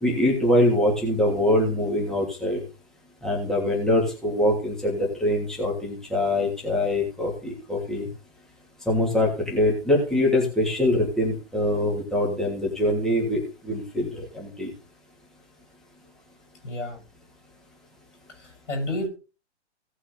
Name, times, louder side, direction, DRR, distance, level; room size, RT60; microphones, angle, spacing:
voice 1, 0.0-2.6 3.2-8.0 8.9-14.1 14.3-14.7, left 1 dB, ahead, -3 dB, 2.7 m, -23 dB
voice 2, 16.6-17.0 18.4-19.1, left 1 dB, 85° left, 5 dB, 6.5 m, -30 dB
17.5 x 6.1 x 4.0 m, 0.34 s
hypercardioid pair, 140°, 36 cm